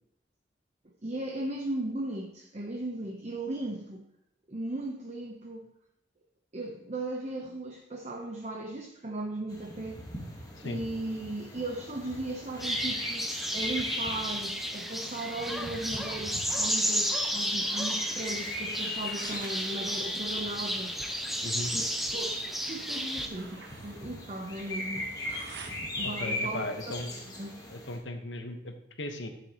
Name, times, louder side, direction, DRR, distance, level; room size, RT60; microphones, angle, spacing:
voice 1, 1.0-4.0 4.5-5.7 6.5-10.0 10.6-20.9 21.7-25.1 26.0-26.9 27.3-27.5, right 2 dB, 35° right, 1 dB, 0.8 m, -37 dB
sound 1, 9.5-28.0, left 1 dB, 20° left, 1.4 m, -41 dB
sound 2, 12.6-23.3, equal, ahead, 0.6 m, -32 dB
sound 3, 18.9-25.7, right 3 dB, 60° right, 1.2 m, -49 dB
voice 2, 21.4-21.7 26.0-27.1 27.7-29.3, left 1 dB, 80° left, 5 dB, 1.1 m, -37 dB
11.5 x 7.0 x 2.9 m, 0.84 s
head